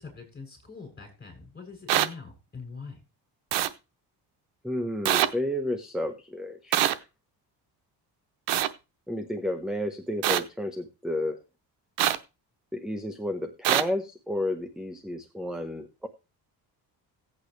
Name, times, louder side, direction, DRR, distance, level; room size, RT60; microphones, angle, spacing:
voice 1, 0.0-3.0, left 4 dB, 25° left, 3 dB, 7.8 m, -43 dB
sound 1, 1.9-2.1 3.5-3.7 5.0-5.3 6.7-6.9 8.5-8.7 10.2-10.4 12.0-12.2 13.6-13.8, right 12 dB, 85° right, 0.9 m, -23 dB
voice 2, 4.6-7.0 9.1-11.4 12.7-16.1, left 1 dB, ahead, 8 dB, 1.2 m, -32 dB
16.0 x 8.7 x 3.3 m, 0.30 s
cardioid pair, 105°, 40 cm